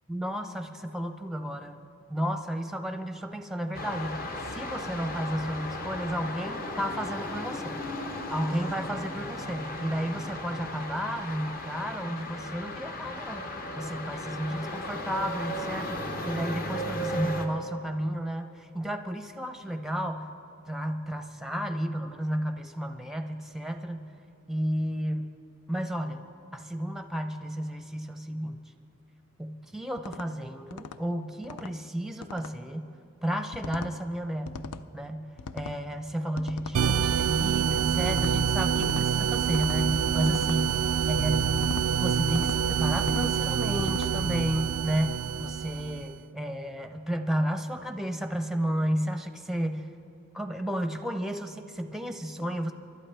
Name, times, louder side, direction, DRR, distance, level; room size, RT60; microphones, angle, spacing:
voice 1, 0.1-1.8 2.1-4.2 4.5-7.8 8.1-20.3 20.6-24.1 24.5-25.3 25.7-26.2 26.5-28.6 29.4-32.9 33.2-35.3 35.5-40.8 41.1-41.4 42.0-49.9 50.3-52.7, equal, ahead, 7 dB, 0.6 m, -32 dB
sound 1, 3.7-17.5, left 1 dB, 40° left, 1.0 m, -36 dB
sound 2, 30.0-30.3 30.7-31.0 31.4-31.7 32.2-32.5 33.5-33.9 34.5-34.8 35.4-35.8 36.4-36.8 38.0-38.3 38.7-39.1 39.5-39.8 40.2-40.6 41.5-41.9 42.3-42.6 43.0-43.3 43.8-44.1, left 5 dB, 90° left, 0.5 m, -39 dB
sound 3, 36.7-46.1, right 7 dB, 80° right, 0.4 m, -26 dB
25.0 x 12.0 x 3.4 m, 2.6 s
head